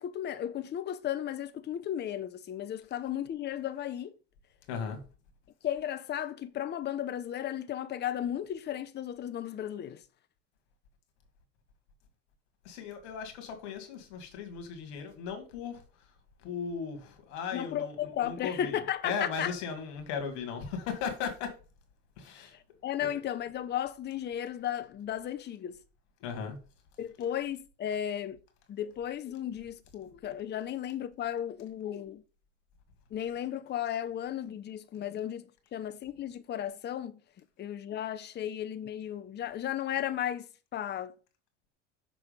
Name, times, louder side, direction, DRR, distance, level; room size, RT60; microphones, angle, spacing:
voice 1, 0.0-4.1 5.6-10.0 17.5-19.5 22.4-22.5 22.8-25.8 27.0-28.4 28.7-32.2 33.1-35.5 35.7-37.2 37.6-40.5 40.7-41.1, left 10 dB, 30° left, 0.7 m, -35 dB
voice 2, 4.7-5.0 12.6-15.8 16.4-18.8 19.0-21.5 22.2-22.6 23.0-23.1 26.2-26.6, left 6 dB, 70° left, 2.0 m, -37 dB
6.1 x 3.5 x 5.1 m
hypercardioid pair, 85°, 36 cm